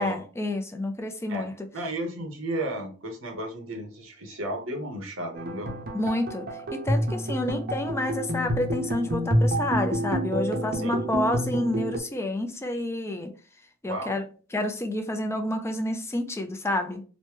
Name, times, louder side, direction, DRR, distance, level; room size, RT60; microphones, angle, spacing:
voice 1, 0.0-1.7 5.9-13.3 13.8-14.2 14.5-17.0, left 1 dB, 15° left, 0.4 m, -29 dB
voice 2, 1.3-5.7 10.8-11.0 13.8-14.2, right 1 dB, 85° right, 0.9 m, -33 dB
sound 1, 5.4-12.0, right 1 dB, 50° right, 0.6 m, -28 dB
3.0 x 2.1 x 3.2 m
head